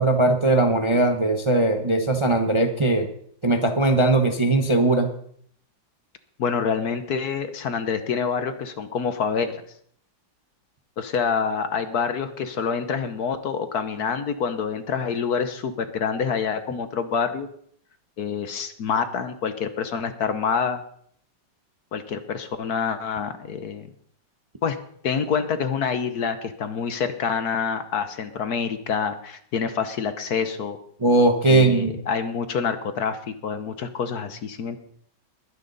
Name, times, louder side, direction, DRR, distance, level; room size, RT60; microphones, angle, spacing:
voice 1, 0.0-3.1 3.4-5.1 31.0-31.9, right 2 dB, 25° right, 6 dB, 0.7 m, -19 dB
voice 2, 6.4-9.6 11.0-17.5 18.2-20.8 21.9-23.9 24.6-24.8 25.0-30.8 31.5-34.8, left 6 dB, 60° left, 10 dB, 1.4 m, -27 dB
21.0 x 10.0 x 4.0 m, 0.63 s
omnidirectional pair, 2.0 m